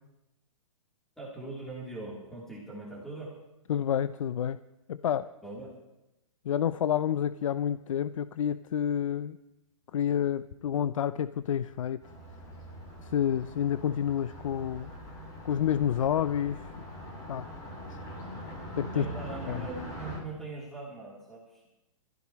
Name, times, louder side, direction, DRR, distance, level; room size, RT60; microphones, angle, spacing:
voice 1, 1.2-3.3 5.4-5.8 18.9-21.6, right 2 dB, ahead, -6 dB, 3.5 m, -41 dB
voice 2, 3.7-4.6 4.9-5.3 6.4-9.4 9.9-12.0 13.0-14.9 15.4-16.7 17.3-17.5 18.8-19.1 19.5-19.6, left 9 dB, 70° left, 14 dB, 0.6 m, -29 dB
Car passing by, 12.0-20.2, equal, 20° left, 7.1 m, -43 dB
28.0 x 15.0 x 3.1 m, 0.94 s
hypercardioid pair, 145°, 17 cm